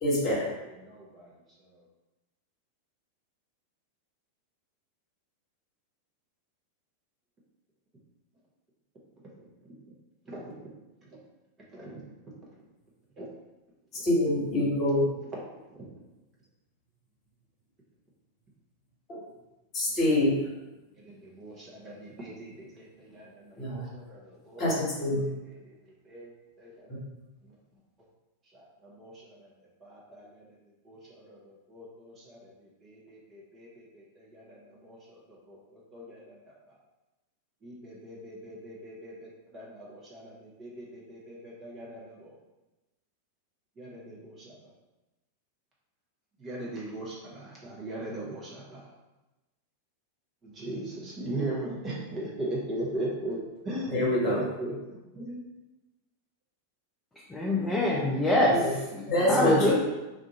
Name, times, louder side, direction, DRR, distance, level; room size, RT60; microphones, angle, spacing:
voice 1, 0.0-0.5 14.0-15.1 19.7-20.4 23.6-23.9 24.6-25.3 53.9-54.4 58.6-58.7 59.1-59.7, left 1 dB, 30° left, -5 dB, 1.3 m, -25 dB
voice 2, 0.8-1.3 10.3-10.7 11.7-12.0 13.2-13.3 15.7-15.9 19.9-20.0 21.0-24.6 25.6-26.9 28.5-29.5 29.8-30.3 30.8-32.5 32.8-35.2 35.5-36.5 37.6-42.3 43.8-44.6 46.4-48.8 50.4-53.4 53.6-54.8 55.1-55.4 59.0-59.7, right 1 dB, 25° right, -5 dB, 0.9 m, -39 dB
voice 3, 57.3-59.0 59.3-59.7, left 1 dB, 10° left, -5 dB, 0.6 m, -25 dB
2.5 x 2.4 x 4.1 m, 1.0 s
figure-of-eight pair, 90°, 0 cm